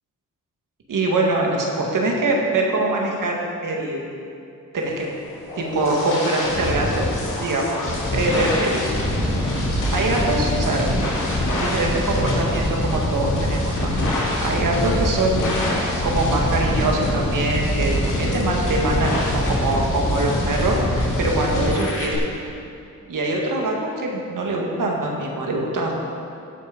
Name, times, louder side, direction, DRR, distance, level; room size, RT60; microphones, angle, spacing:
voice 1, 0.9-4.1 4.7-5.1 5.6-7.1 7.4-7.8 8.1-8.9 9.9-10.9 11.6-15.6 16.0-22.2 23.1-25.9, right 2 dB, 75° right, -1 dB, 1.9 m, -23 dB
sound 1, 5.2-22.2, left 1 dB, 65° left, 2.7 m, -24 dB
16.5 x 5.7 x 5.2 m, 2.6 s
cardioid pair, 65°, 32 cm